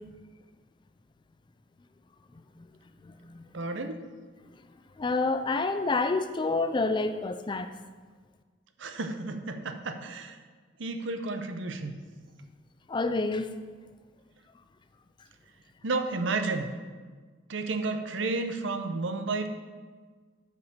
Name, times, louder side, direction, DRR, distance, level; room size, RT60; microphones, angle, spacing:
voice 1, 3.0-3.5 5.0-7.7 12.9-13.5, left 3 dB, 25° left, 9 dB, 0.4 m, -28 dB
voice 2, 3.5-4.0 8.8-10.4 10.8-12.0 15.8-16.7 17.5-19.5, right 3 dB, 70° right, 7 dB, 0.7 m, -32 dB
8.2 x 4.9 x 6.8 m, 1.5 s
head